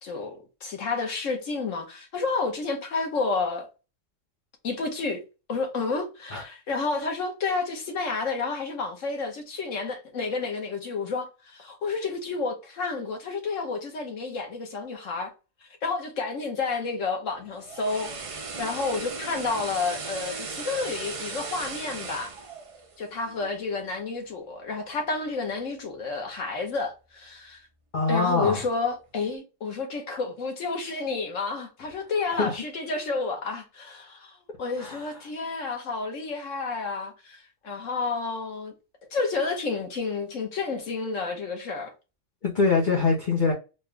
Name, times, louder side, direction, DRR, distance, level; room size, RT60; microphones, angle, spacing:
voice 1, 0.0-3.7 4.6-5.2 5.5-15.3 15.6-18.1 18.6-22.3 23.0-27.6 28.1-38.7 39.1-41.9, left 4 dB, 80° left, 1.5 m, -30 dB
sound 1, 17.4-23.6 24.0-24.2, right 4 dB, 40° right, 0.5 m, -37 dB
voice 2, 27.9-28.6 32.4-32.5 34.8-35.1 42.4-43.5, left 4 dB, 45° left, 0.9 m, -23 dB
4.2 x 2.3 x 3.2 m
omnidirectional pair, 1.3 m